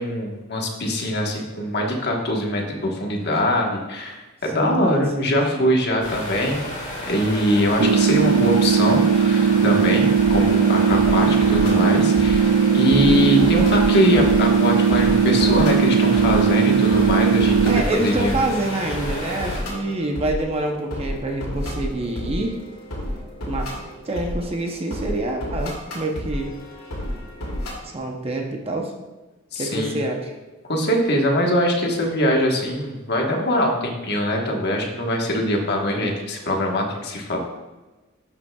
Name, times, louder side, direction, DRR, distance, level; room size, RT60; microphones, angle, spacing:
voice 1, 0.0-6.6 7.1-17.7 18.0-18.4 29.5-29.9 30.7-37.4, equal, 50° left, 1 dB, 1.3 m, -22 dB
voice 2, 4.5-5.7 17.6-22.6 23.5-23.7 24.1-26.5 27.8-28.9 29.6-30.3, right 2 dB, 30° right, 2 dB, 0.7 m, -26 dB
sound 1, 6.0-19.6, equal, 35° left, 2.0 m, -32 dB
sound 2, 7.8-17.8, right 6 dB, 85° right, 0.4 m, -18 dB
sound 3, 10.2-27.7, equal, 80° left, 2.5 m, -32 dB
12.0 x 5.6 x 2.3 m, 1.2 s
head